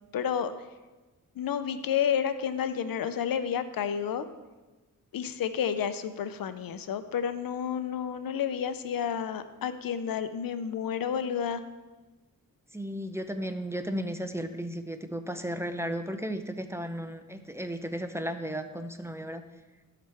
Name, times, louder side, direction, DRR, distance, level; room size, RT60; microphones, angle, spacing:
voice 1, 0.1-0.5 1.4-4.2 5.1-11.6, left 8 dB, 85° left, 11 dB, 0.6 m, -30 dB
voice 2, 12.7-19.4, equal, 10° right, 8 dB, 0.5 m, -34 dB
13.5 x 5.9 x 3.4 m, 1.2 s
wide cardioid pair, 85°, 34 cm